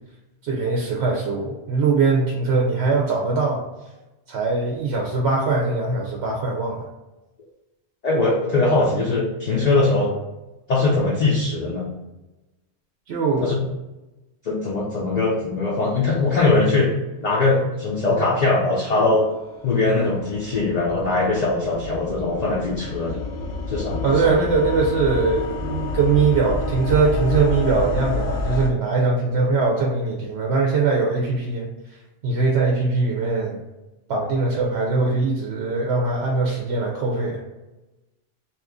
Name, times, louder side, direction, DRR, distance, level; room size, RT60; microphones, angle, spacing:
voice 1, 0.4-3.6 4.3-6.8 13.1-13.5 24.0-31.7 32.2-33.6 34.1-37.4, right 4 dB, 70° right, -1 dB, 0.8 m, -21 dB
voice 2, 8.0-10.1 10.7-11.9 13.4-13.6 14.4-16.9 17.2-19.3 19.6-23.2 23.7-24.5, left 3 dB, 45° left, -4 dB, 0.6 m, -21 dB
sound 1, 19.0-28.7, left 3 dB, 75° left, 0.9 m, -29 dB
2.8 x 2.5 x 3.5 m, 1.0 s
omnidirectional pair, 1.2 m